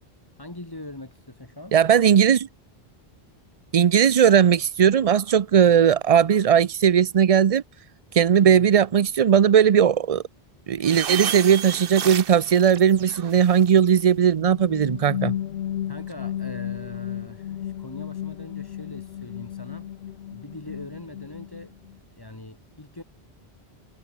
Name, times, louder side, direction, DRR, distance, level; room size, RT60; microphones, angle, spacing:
voice 1, 0.4-1.8 8.4-8.7 15.9-19.9 20.3-21.7 22.2-23.0, left 2 dB, 20° left, 1.8 m, -41 dB
voice 2, 1.7-2.5 3.7-7.6 8.1-10.2 10.7-15.3, right 8 dB, 45° right, 0.5 m, -18 dB
sound 1, 10.8-13.9, right 8 dB, 65° right, 1.0 m, -32 dB
sound 2, 14.2-22.0, left 11 dB, 85° left, 0.9 m, -33 dB
omnidirectional pair, 1.0 m